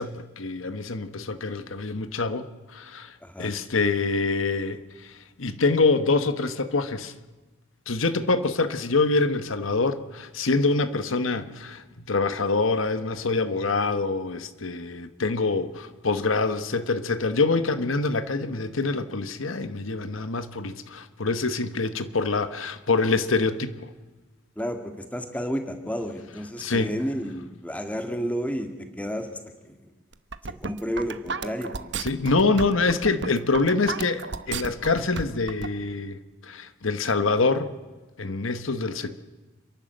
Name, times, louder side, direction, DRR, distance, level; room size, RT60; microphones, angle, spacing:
voice 1, 0.0-7.1 7.9-23.9 26.6-26.9 32.0-37.7 38.2-39.2, left 3 dB, 75° left, 1.2 m, -25 dB
voice 2, 3.2-3.5 24.6-29.4 29.6-29.9 30.4-32.0, equal, 5° left, 1.9 m, -31 dB
sound 1, 30.1-35.7, right 4 dB, 55° right, 1.0 m, -33 dB
29.5 x 11.5 x 7.8 m
head